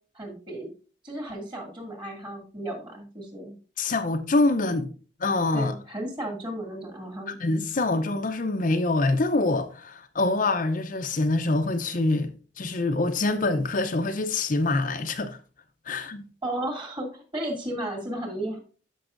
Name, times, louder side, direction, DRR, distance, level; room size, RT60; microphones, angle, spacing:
voice 1, 0.1-0.7 1.0-3.5 5.5-7.4 16.4-18.6, right 1 dB, 25° right, 2.3 m, -34 dB
voice 2, 3.8-4.9 5.2-5.7 7.3-15.4 15.9-16.2, left 2 dB, 45° left, 0.6 m, -25 dB
13.0 x 5.4 x 2.5 m
head